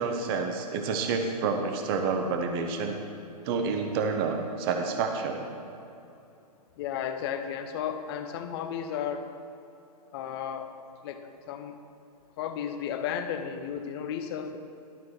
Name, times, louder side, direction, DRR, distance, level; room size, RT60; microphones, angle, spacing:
voice 1, 0.0-3.0 3.4-5.4, right 4 dB, 35° right, 5 dB, 0.8 m, -29 dB
voice 2, 6.8-9.3 10.1-10.7 11.0-11.8 12.4-14.6, left 8 dB, 40° left, 8 dB, 0.6 m, -34 dB
12.0 x 6.2 x 4.3 m, 2.7 s
hypercardioid pair, 135°, 20 cm